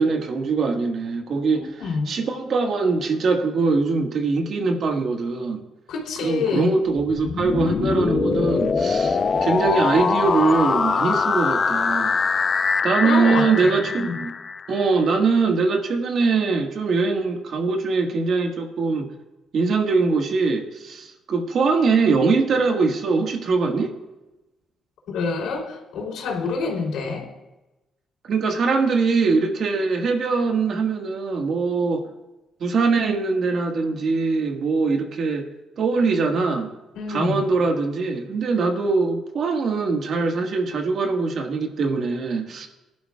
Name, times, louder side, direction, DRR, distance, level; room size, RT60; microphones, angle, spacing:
voice 1, 0.0-5.6 6.2-12.2 12.8-14.3 14.7-19.1 19.5-23.9 28.2-32.1 32.6-35.5 35.8-36.7 37.1-42.7, right 4 dB, 60° right, 3 dB, 1.7 m, -22 dB
voice 2, 1.5-2.1 5.9-6.7 7.6-8.1 13.0-14.2 25.1-27.3 36.9-37.4, left 4 dB, 85° left, -2 dB, 3.3 m, -27 dB
sound 1, 7.0-14.9, left 5 dB, 40° left, 0.7 m, -23 dB
19.0 x 11.5 x 2.4 m, 1.0 s
cardioid pair, 90°, 0 cm